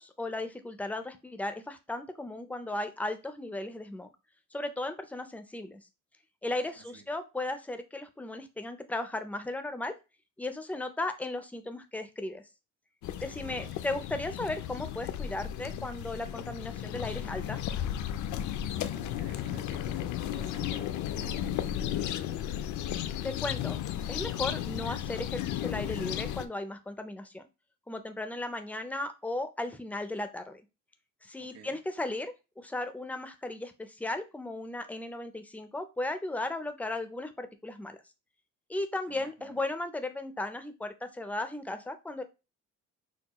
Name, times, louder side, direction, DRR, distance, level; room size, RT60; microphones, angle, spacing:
voice 1, 0.0-4.1 4.5-5.8 6.4-9.9 10.4-12.4 13.2-17.6 23.2-23.8 24.1-27.4 27.9-30.6 31.2-38.0 38.7-42.2, left 2 dB, 5° left, 0.3 m, -36 dB
sound 1, 13.0-26.5, left 11 dB, 70° left, 0.5 m, -34 dB
voice 2, 13.3-13.8 18.7-22.1 31.4-31.8 39.1-39.6, right 5 dB, 55° right, 1.3 m, -52 dB
6.0 x 2.2 x 2.9 m
cardioid pair, 155°, 30 cm